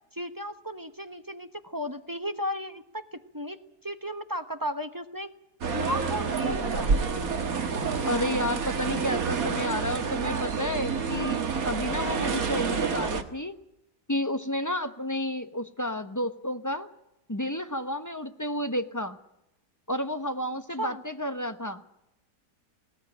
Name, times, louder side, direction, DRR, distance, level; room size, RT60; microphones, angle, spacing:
voice 1, 0.1-5.3 5.7-6.9 20.8-21.0, equal, 15° right, 8 dB, 0.8 m, -35 dB
sound 1, 5.6-13.2, right 5 dB, 60° right, 1.9 m, -28 dB
voice 2, 8.0-13.6 14.1-16.9 17.3-19.2 19.9-21.8, left 1 dB, 15° left, 9 dB, 0.6 m, -31 dB
20.0 x 17.5 x 9.9 m, 0.88 s
omnidirectional pair, 1.8 m